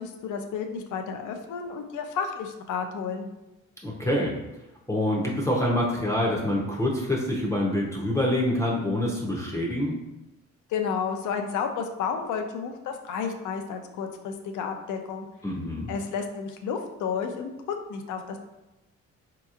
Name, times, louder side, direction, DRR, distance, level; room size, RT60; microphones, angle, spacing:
voice 1, 0.0-3.3 10.7-15.3 15.9-17.5 17.9-18.4, left 6 dB, 80° left, 5 dB, 0.6 m, -31 dB
voice 2, 3.8-4.3 4.9-10.0 15.4-15.9, left 1 dB, 10° left, -3 dB, 0.6 m, -26 dB
4.2 x 2.9 x 2.4 m, 0.97 s
cardioid pair, 90°, 30 cm